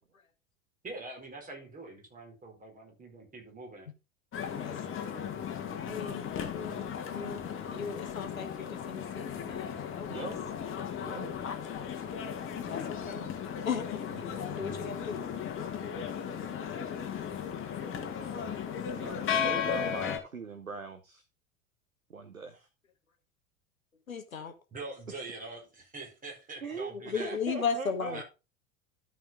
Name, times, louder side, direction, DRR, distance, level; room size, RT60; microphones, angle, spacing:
voice 1, 0.8-3.9 24.7-27.4 28.1-28.2, right 3 dB, 20° right, 1 dB, 4.7 m, -44 dB
sound 1, 4.3-20.2, left 7 dB, 30° left, 2.1 m, -36 dB
voice 2, 5.8-6.2 6.5-7.4 7.7-10.1 11.4-11.6 12.6-13.2 13.6-15.2 24.1-24.5 26.9-28.2, left 6 dB, 80° left, 8 dB, 1.5 m, -36 dB
voice 3, 10.1-10.4 11.0-11.3 13.0-13.3 18.9-21.2 22.1-22.7 26.6-28.2, right 5 dB, 85° right, 9 dB, 1.0 m, -41 dB
12.5 x 5.6 x 3.8 m, 0.29 s
figure-of-eight pair, 80°, 40 cm